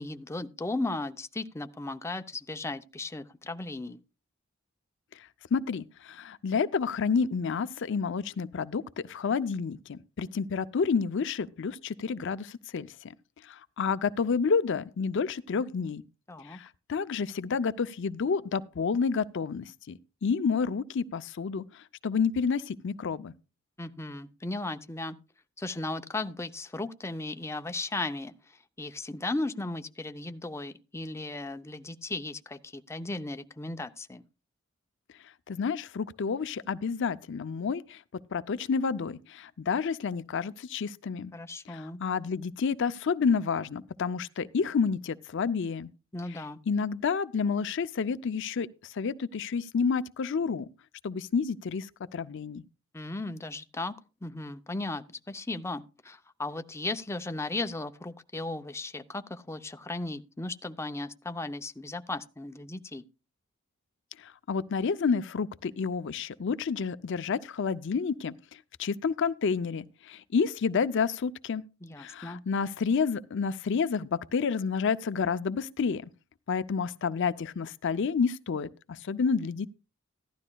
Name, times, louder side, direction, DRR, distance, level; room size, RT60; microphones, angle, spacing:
voice 1, 0.0-4.0 16.3-16.6 23.8-25.2 25.6-28.3 28.8-34.2 41.3-42.0 46.1-46.6 52.9-53.9 54.2-63.0 71.8-72.4, left 2 dB, 15° left, 0.5 m, -36 dB
voice 2, 5.5-13.1 13.5-16.0 16.5-21.6 22.0-23.3 35.5-38.0 38.3-41.3 41.7-45.9 46.7-50.7 51.0-52.6 64.2-68.3 68.8-71.6 72.0-76.1 76.5-79.7, left 5 dB, 65° left, 0.5 m, -29 dB
15.5 x 12.0 x 2.3 m
head